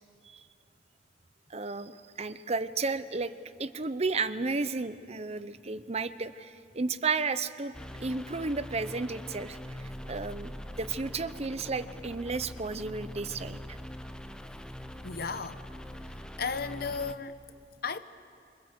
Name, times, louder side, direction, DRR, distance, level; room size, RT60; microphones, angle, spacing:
voice 1, 1.5-3.3 3.6-13.8, right 4 dB, 35° right, 0.8 m, -33 dB
sound 1, 7.7-17.1, equal, 5° left, 0.9 m, -43 dB
voice 2, 15.0-15.6 16.0-16.1 16.4-17.4 17.8-18.0, left 5 dB, 60° left, 1.0 m, -34 dB
26.0 x 24.0 x 8.0 m
head